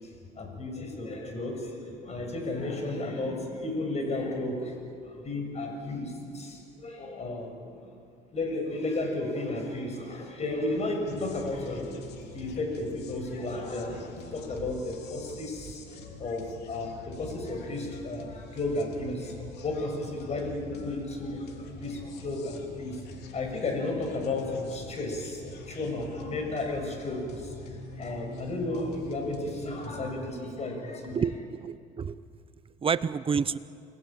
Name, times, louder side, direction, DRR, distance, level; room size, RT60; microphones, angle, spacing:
voice 1, 0.4-4.8 5.0-7.6 8.3-23.0 23.3-27.6 28.0-31.2, left 2 dB, 40° left, 3 dB, 7.0 m, -33 dB
sound 1, 11.1-30.2, left 3 dB, 80° left, 3.3 m, -46 dB
voice 2, 31.1-32.2 32.8-33.6, right 6 dB, 35° right, 15 dB, 0.8 m, -29 dB
29.5 x 20.5 x 9.0 m, 2.4 s
cardioid pair, 110°, 17 cm